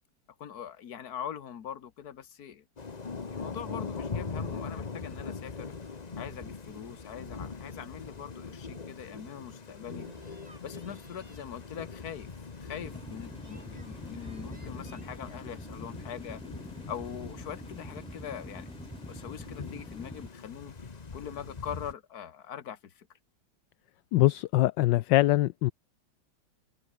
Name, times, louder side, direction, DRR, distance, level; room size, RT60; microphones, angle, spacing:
voice 1, 0.4-2.6 3.3-5.7 6.2-10.1 10.6-12.3 12.6-16.4 16.9-18.7 19.1-20.7 21.1-23.1, left 9 dB, 55° left, 1.8 m, -42 dB
Thunder / Rain, 2.8-21.9, left 4 dB, 30° left, 1.0 m, -42 dB
sound 1, 9.9-15.4, right 1 dB, 20° right, 6.9 m, -58 dB
sound 2, 12.8-20.3, equal, 5° left, 1.7 m, -45 dB
voice 2, 24.1-25.7, left 16 dB, 75° left, 1.3 m, -23 dB
omnidirectional pair, 2.0 m